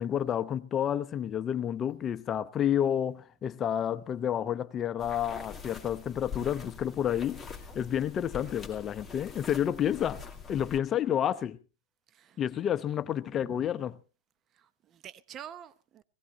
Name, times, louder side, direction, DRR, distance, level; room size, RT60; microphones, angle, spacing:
voice 1, 0.0-7.4 7.7-10.2 10.5-11.6 12.4-14.0, left 9 dB, 25° left, 0.8 m, -30 dB
sound 1, 5.0-10.8, left 6 dB, 10° left, 2.1 m, -44 dB
voice 2, 13.3-13.7 14.5-16.0, right 9 dB, 30° right, 0.8 m, -48 dB
18.5 x 17.0 x 3.1 m
hypercardioid pair, 115°, 0 cm